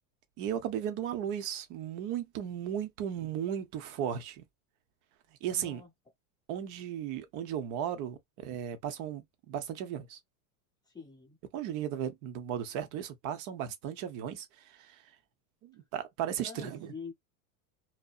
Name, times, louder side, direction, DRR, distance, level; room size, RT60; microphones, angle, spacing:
voice 1, 0.4-4.4 5.4-5.8 6.5-10.2 11.5-15.0 15.6-16.9, right 9 dB, 40° right, 0.6 m, -36 dB
voice 2, 5.5-5.9 10.9-11.4 16.4-17.1, left 5 dB, 10° left, 0.7 m, -45 dB
2.6 x 2.0 x 2.3 m
supercardioid pair, 135°, 45 cm